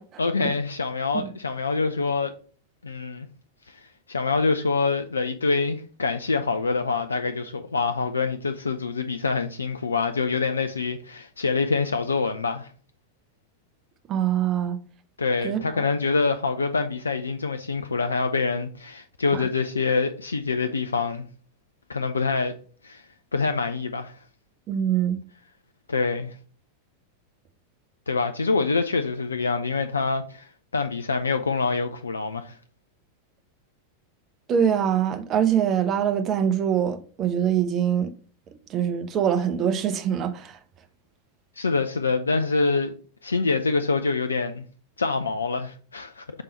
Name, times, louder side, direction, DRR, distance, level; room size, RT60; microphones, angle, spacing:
voice 1, 0.2-2.3 2.8-3.3 3.7-12.7 15.2-21.3 21.9-22.5 22.8-23.0 23.3-24.2 25.9-26.4 28.1-32.6 41.6-42.9 43.2-44.7 45.0-46.2, left 4 dB, 75° left, 0.4 m, -25 dB
voice 2, 14.1-14.8 15.4-15.9 19.3-19.4 24.7-25.2 34.5-38.1 38.7-40.6, right 9 dB, 30° right, 0.8 m, -24 dB
6.6 x 3.7 x 4.3 m
figure-of-eight pair, 90°, 0 cm